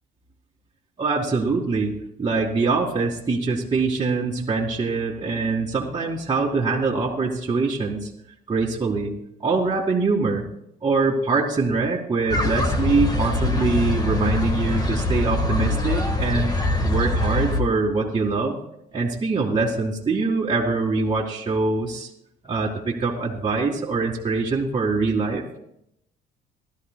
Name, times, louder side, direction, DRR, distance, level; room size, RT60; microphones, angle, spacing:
voice 1, 1.0-1.9 2.2-8.1 8.5-9.1 9.4-10.4 10.8-18.6 18.9-22.1 22.4-25.4, right 3 dB, 25° right, -5 dB, 2.0 m, -23 dB
sound 1, 12.3-17.6, left 2 dB, 25° left, 1.5 m, -23 dB
19.5 x 13.0 x 2.3 m, 0.76 s
cardioid pair, 110°, 17 cm